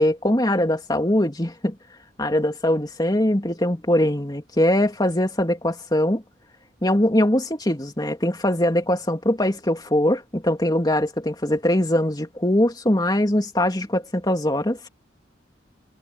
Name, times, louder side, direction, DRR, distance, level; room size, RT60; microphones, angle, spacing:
voice 1, 0.0-1.8 2.2-6.2 6.8-14.8, left 1 dB, 20° left, 2.9 m, -22 dB
head